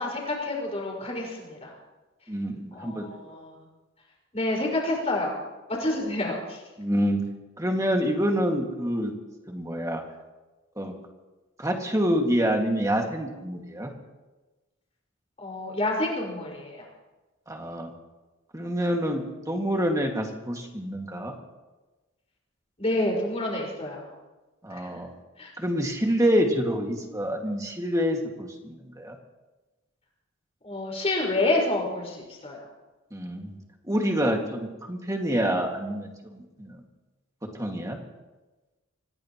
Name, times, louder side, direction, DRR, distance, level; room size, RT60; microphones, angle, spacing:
voice 1, 0.0-1.7 2.7-3.6 4.3-5.4 5.7-6.6 15.4-16.9 22.8-24.1 24.7-25.0 25.4-25.5 30.6-32.6, left 2 dB, 30° left, -2 dB, 5.3 m, -28 dB
voice 2, 2.3-3.1 6.8-7.2 7.6-9.1 9.5-10.0 10.8-10.9 11.6-13.9 17.5-17.9 18.5-21.3 24.6-25.1 25.6-29.2 33.1-33.6 33.8-36.8 37.6-38.0, equal, 15° right, 2 dB, 2.0 m, -27 dB
26.0 x 17.5 x 3.1 m, 1.1 s
head